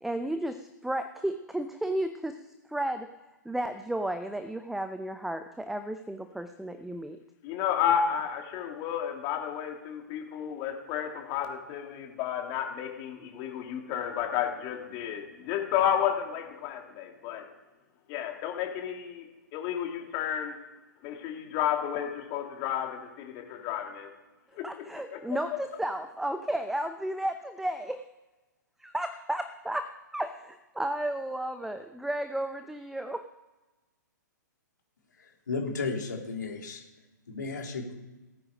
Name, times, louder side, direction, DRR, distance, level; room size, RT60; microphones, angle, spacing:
voice 1, 0.0-2.4 2.7-3.1 3.4-7.2 24.6-28.0 28.8-29.9 30.1-33.3, right 1 dB, 5° right, 9 dB, 0.7 m, -33 dB
voice 2, 7.4-17.4 18.1-19.3 19.5-20.5 21.0-24.1 24.5-24.7 25.1-25.2, left 9 dB, 35° left, 2 dB, 3.0 m, -31 dB
voice 3, 35.2-36.8 37.3-37.9, left 4 dB, 75° left, 0 dB, 3.6 m, -34 dB
18.0 x 9.2 x 5.0 m, 1.1 s
figure-of-eight pair, 115°, 10 cm